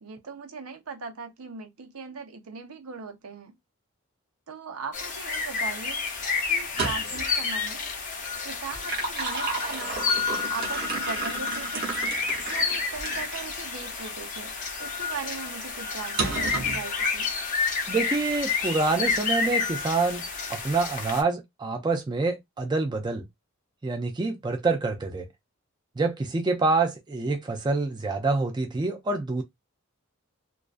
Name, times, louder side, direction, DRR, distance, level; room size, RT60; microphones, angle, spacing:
voice 1, 0.0-3.6 4.5-6.0 6.5-7.8 8.4-10.1 10.5-11.9 12.5-14.5 14.8-17.3, right 5 dB, 90° right, 0.7 m, -39 dB
sound 1, 4.9-21.2, left 5 dB, 35° left, 0.5 m, -30 dB
sound 2, 6.6-7.3 8.6-13.4 14.1-14.2 16.2-16.8, right 3 dB, 45° right, 0.8 m, -32 dB
voice 2, 17.9-20.2 20.5-23.3 23.8-25.3 26.0-29.4, right 3 dB, 20° right, 0.3 m, -26 dB
2.4 x 2.3 x 2.4 m
head